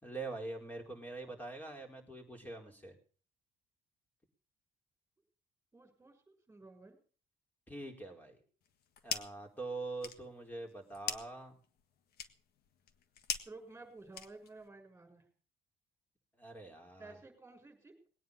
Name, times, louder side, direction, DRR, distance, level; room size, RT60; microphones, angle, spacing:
voice 1, 0.0-2.9 7.7-8.4 9.0-11.6 16.4-17.2, right 2 dB, 10° left, 3 dB, 4.8 m, -44 dB
voice 2, 5.7-7.0 13.4-15.3 17.0-18.1, right 3 dB, 10° right, 4 dB, 6.6 m, -53 dB
sound 1, 8.6-9.5 9.8-14.7, left 8 dB, 70° left, 1.6 m, -43 dB
20.0 x 9.4 x 6.9 m, 0.42 s
cardioid pair, 110°, 17 cm